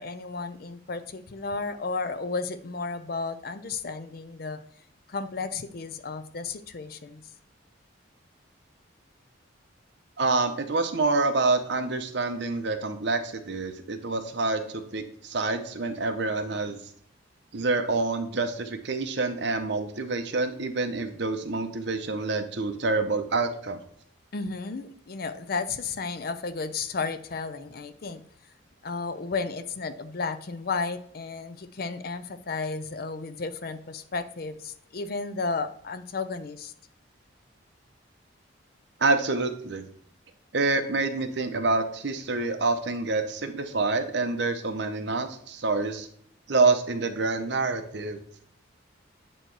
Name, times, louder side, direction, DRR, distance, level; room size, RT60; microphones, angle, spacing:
voice 1, 0.0-4.6 5.1-7.2 24.3-28.2 28.8-36.7, left 4 dB, 50° left, 12 dB, 0.5 m, -33 dB
voice 2, 10.2-16.8 17.5-23.8 39.0-39.9 40.5-46.1 46.5-48.2, right 3 dB, 60° right, 7 dB, 0.8 m, -27 dB
9.1 x 3.0 x 4.6 m, 0.63 s
head